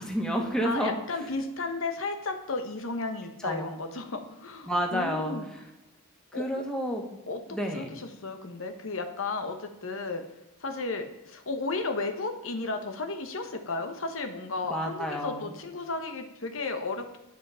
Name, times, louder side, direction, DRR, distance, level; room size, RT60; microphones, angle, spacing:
voice 1, 0.0-1.0 3.4-3.7 4.7-5.3 6.3-7.1 7.5-7.9 14.7-15.5, equal, 5° left, 0 dB, 1.7 m, -30 dB
voice 2, 0.6-5.5 6.3-6.4 7.3-7.4 7.7-10.2 10.6-17.2, left 3 dB, 65° left, 6 dB, 1.1 m, -34 dB
11.0 x 7.5 x 5.6 m, 1.0 s
head